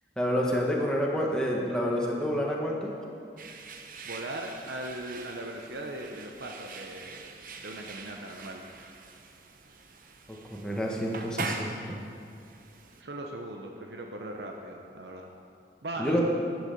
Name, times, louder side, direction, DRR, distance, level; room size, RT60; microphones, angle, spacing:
voice 1, 0.2-2.9 10.3-12.0 16.0-16.2, equal, 5° left, -2 dB, 1.4 m, -28 dB
sound 1, 3.4-13.0, right 3 dB, 50° right, 0.8 m, -43 dB
voice 2, 4.0-8.6 13.0-15.3 15.8-16.2, right 1 dB, 75° right, 1 dB, 0.9 m, -39 dB
11.0 x 8.1 x 6.8 m, 2.5 s
head